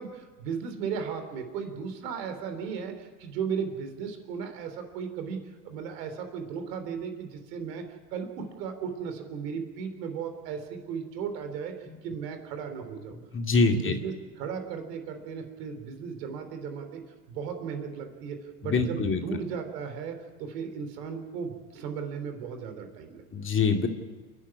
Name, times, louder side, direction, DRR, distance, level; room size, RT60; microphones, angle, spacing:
voice 1, 0.0-5.4 5.6-7.8 8.1-13.2 13.7-17.0 17.3-23.2, right 6 dB, 70° right, 7 dB, 3.5 m, -36 dB
voice 2, 13.3-13.9 18.6-19.2 23.3-23.9, left 4 dB, 25° left, 4 dB, 2.3 m, -24 dB
29.0 x 10.0 x 9.7 m, 1.4 s
hypercardioid pair, 90°, 50 cm